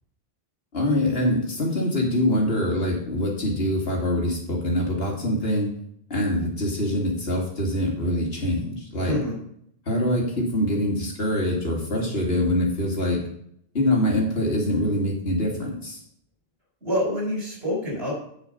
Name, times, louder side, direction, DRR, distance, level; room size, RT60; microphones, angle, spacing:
voice 1, 0.7-5.7 6.1-9.1 9.9-13.2 13.7-16.0, left 1 dB, 75° left, -1 dB, 2.7 m, -24 dB
voice 2, 9.0-9.4 16.8-18.1, left 1 dB, 80° right, -3 dB, 4.9 m, -26 dB
8.7 x 6.8 x 5.3 m, 0.70 s
omnidirectional pair, 1.0 m